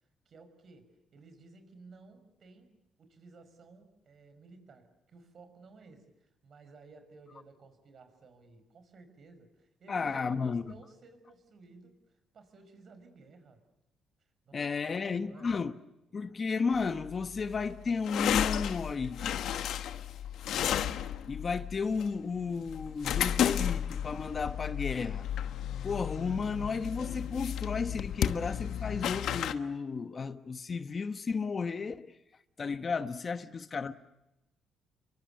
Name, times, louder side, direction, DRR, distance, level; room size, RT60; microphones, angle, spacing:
voice 1, 0.3-12.0 12.3-13.6 14.5-15.6 19.2-20.0 22.8-23.2, right 3 dB, 55° right, 5.6 m, -56 dB
voice 2, 9.9-10.6 14.5-15.7 16.1-19.3 21.3-25.3 25.8-32.1 32.6-33.9, left 5 dB, 40° left, 1.1 m, -33 dB
sound 1, 16.7-29.5, left 10 dB, 80° left, 1.2 m, -33 dB
30.0 x 24.0 x 6.8 m
cardioid pair, 90°, 0 cm